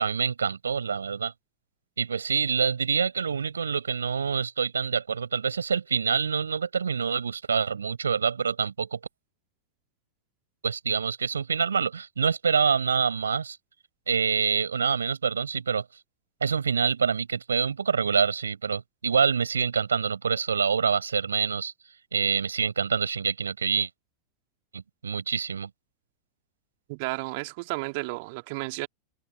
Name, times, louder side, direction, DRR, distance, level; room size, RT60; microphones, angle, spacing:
voice 1, 0.0-1.3 2.0-9.0 10.6-13.6 14.1-15.8 16.4-21.7 22.1-23.9 24.7-25.7, right 6 dB, 70° right, 6.6 m, -26 dB
voice 2, 26.9-28.9, right 27 dB, 50° right, 2.7 m, -32 dB
figure-of-eight pair, 90°, 0 cm